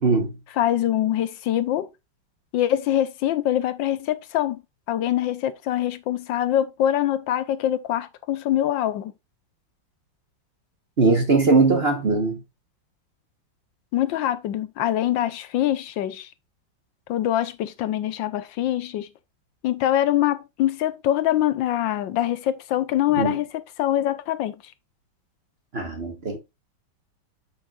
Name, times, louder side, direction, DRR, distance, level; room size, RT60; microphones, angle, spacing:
voice 1, 0.0-0.4 11.0-12.4 23.2-23.3 25.7-26.4, right 3 dB, 40° right, 1.1 m, -20 dB
voice 2, 0.6-1.9 2.5-4.6 4.9-9.1 13.9-16.3 17.1-19.1 19.6-24.5, left 12 dB, 75° left, 1.3 m, -24 dB
8.6 x 6.4 x 2.4 m
omnidirectional pair, 2.2 m